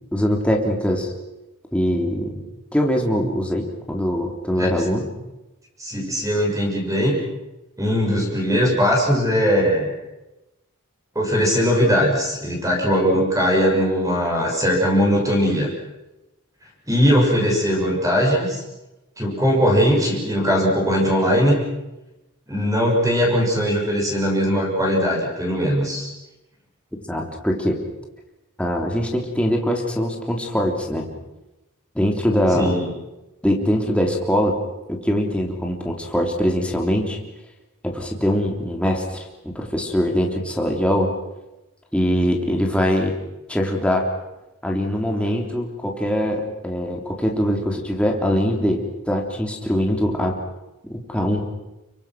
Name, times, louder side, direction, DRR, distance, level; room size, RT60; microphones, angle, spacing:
voice 1, 0.1-1.1 1.7-2.4 2.7-5.1 27.1-27.8 28.6-31.1 31.9-32.8 33.4-34.6 34.9-37.2 37.8-41.1 41.9-43.1 43.5-44.0 44.6-50.4 50.9-51.4, equal, 5° left, 0 dB, 3.4 m, -22 dB
voice 2, 5.8-7.2 7.8-9.9 11.1-15.7 16.9-18.6 19.2-21.6 22.5-26.1 32.5-32.9, equal, 15° right, -1 dB, 6.6 m, -20 dB
29.5 x 24.0 x 6.1 m, 0.98 s
head